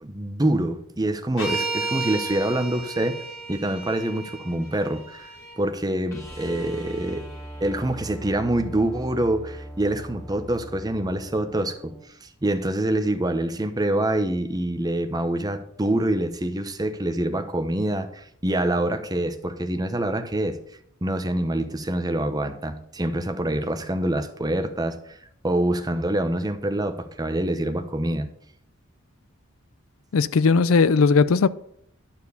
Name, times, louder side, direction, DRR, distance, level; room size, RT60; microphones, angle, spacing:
voice 1, 0.0-3.2 3.5-7.3 7.6-11.9 12.2-20.6 21.0-25.2 25.4-28.3, right 1 dB, 20° right, 0.9 m, -26 dB
sound 1, 1.4-5.5, right 3 dB, 70° left, 5.1 m, -33 dB
sound 2, 6.1-12.1 14.6-14.7, equal, 15° left, 2.2 m, -40 dB
voice 2, 30.1-31.5, left 4 dB, 85° left, 0.5 m, -18 dB
11.5 x 4.5 x 6.9 m
head